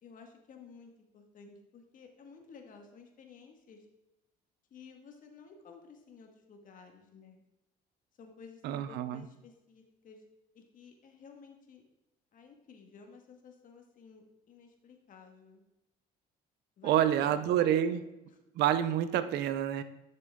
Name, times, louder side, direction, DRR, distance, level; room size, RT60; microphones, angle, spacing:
voice 1, 0.0-3.8 4.7-7.4 8.2-10.2 10.5-11.9 12.3-15.6 16.8-18.0 18.3-18.4, left 5 dB, 55° left, 3 dB, 1.7 m, -54 dB
voice 2, 8.6-9.2 16.8-18.0 18.6-19.8, right 10 dB, 80° right, 12 dB, 0.6 m, -28 dB
11.0 x 6.7 x 3.6 m, 0.95 s
cardioid pair, 110°, 17 cm